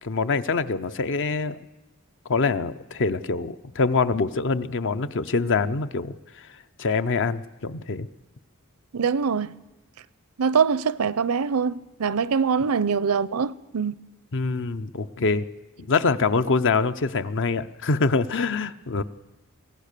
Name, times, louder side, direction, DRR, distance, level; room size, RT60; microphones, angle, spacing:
voice 1, 0.0-1.6 2.3-6.1 6.8-8.1 14.3-15.5 15.8-19.0, left 4 dB, 60° left, 0.7 m, -24 dB
voice 2, 8.9-9.5 10.4-13.9, right 6 dB, 75° right, 0.6 m, -23 dB
23.5 x 17.5 x 6.7 m
head